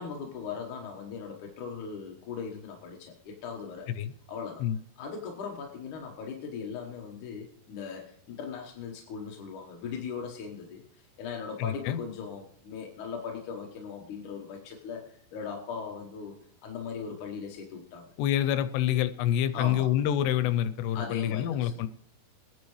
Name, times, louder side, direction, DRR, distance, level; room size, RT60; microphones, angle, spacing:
voice 1, 0.0-3.9 4.3-4.6 5.0-16.3 16.6-18.1 19.5-19.9 21.0-21.7, left 6 dB, 65° left, 1 dB, 2.2 m, -39 dB
voice 2, 11.6-12.0 18.2-21.9, left 11 dB, 85° left, 11 dB, 2.8 m, -27 dB
23.0 x 10.0 x 3.1 m, 0.62 s
omnidirectional pair, 4.8 m